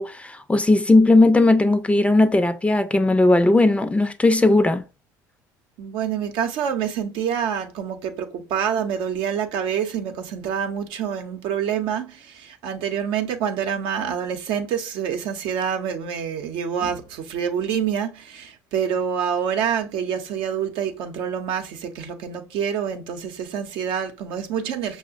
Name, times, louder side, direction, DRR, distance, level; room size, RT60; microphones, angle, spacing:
voice 1, 0.0-4.8, left 2 dB, 15° left, 0.5 m, -17 dB
voice 2, 5.8-25.0, right 8 dB, 65° right, 0.7 m, -27 dB
5.9 x 2.1 x 2.5 m
hypercardioid pair, 65°, 10 cm